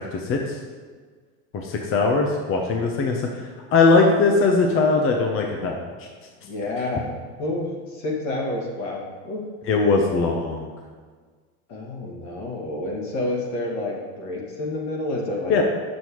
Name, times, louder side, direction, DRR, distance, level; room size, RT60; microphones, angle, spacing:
voice 1, 0.1-0.6 1.5-3.4 3.7-5.7 6.0-6.1 9.7-10.7 15.5-15.6, left 3 dB, 40° left, 1 dB, 0.8 m, -20 dB
voice 2, 6.4-7.1 7.4-9.4 11.7-15.6, left 2 dB, 55° left, -3 dB, 1.9 m, -29 dB
6.8 x 6.2 x 3.1 m, 1.5 s
supercardioid pair, 110°, 34 cm